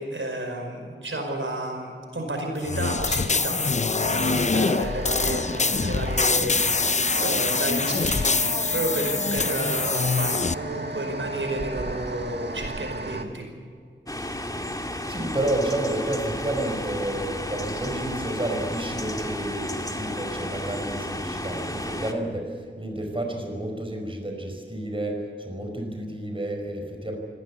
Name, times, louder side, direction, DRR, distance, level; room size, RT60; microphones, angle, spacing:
voice 1, 0.0-3.8 4.1-13.4, right 1 dB, 75° right, 2 dB, 5.1 m, -31 dB
sound 1, 2.6-10.5, left 4 dB, 35° left, 0.5 m, -24 dB
sound 2, 4.0-13.2, right 2 dB, 55° right, 2.0 m, -35 dB
sound 3, 14.1-22.1, left 1 dB, 20° left, 2.2 m, -32 dB
voice 2, 15.1-27.2, right 1 dB, 25° right, 2 dB, 5.0 m, -30 dB
25.5 x 17.0 x 8.4 m, 2.1 s
wide cardioid pair, 65°, 20 cm